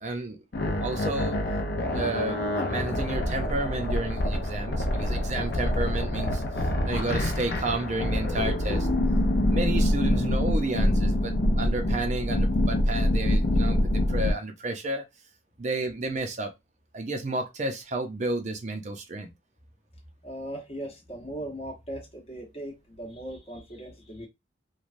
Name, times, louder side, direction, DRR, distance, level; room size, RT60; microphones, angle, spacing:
voice 1, 0.0-0.4 0.8-1.4 1.8-2.4 2.7-6.4 6.9-8.9 9.5-15.0 15.6-16.5 16.9-19.3, right 2 dB, 35° right, 0.5 m, -31 dB
sound 1, 0.5-14.3, left 1 dB, 55° left, 0.5 m, -26 dB
voice 2, 20.2-24.3, right 1 dB, 30° left, 0.9 m, -38 dB
3.1 x 2.2 x 2.5 m
head